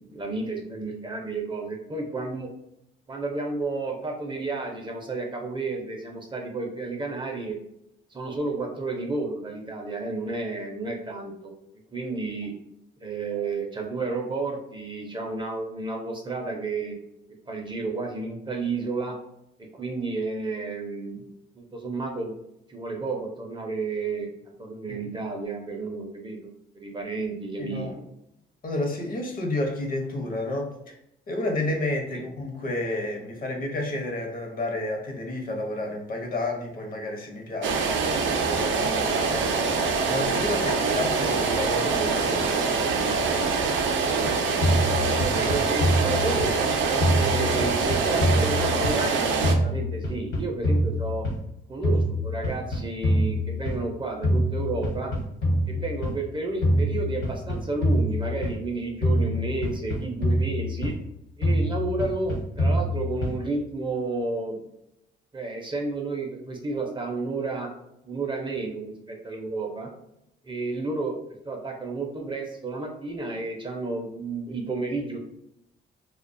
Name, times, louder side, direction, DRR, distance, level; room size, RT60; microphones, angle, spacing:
voice 1, 0.0-2.5 3.1-7.6 8.1-11.5 11.9-12.5 13.0-17.0 17.5-19.2 19.6-21.3 21.6-22.3 22.7-24.3 24.6-28.0 32.1-32.2 45.0-51.3 51.7-55.1 55.7-60.9 61.4-64.6 65.3-67.7 68.0-69.9 70.4-75.2, right 3 dB, 25° right, 1 dB, 0.5 m, -31 dB
voice 2, 27.6-27.9 28.6-30.9 31.3-38.2 38.4-43.2, left 1 dB, 45° left, 2 dB, 0.7 m, -31 dB
sound 1, 37.6-49.5, right 4 dB, 75° right, 0.4 m, -24 dB
sound 2, 44.6-46.7 47.0-49.2 49.4-51.5 51.8-53.9 54.2-56.2 56.6-58.7 59.0-61.1 61.4-63.5, equal, 60° left, 1.0 m, -25 dB
2.3 x 2.2 x 2.5 m, 0.80 s
cardioid pair, 90°, 20 cm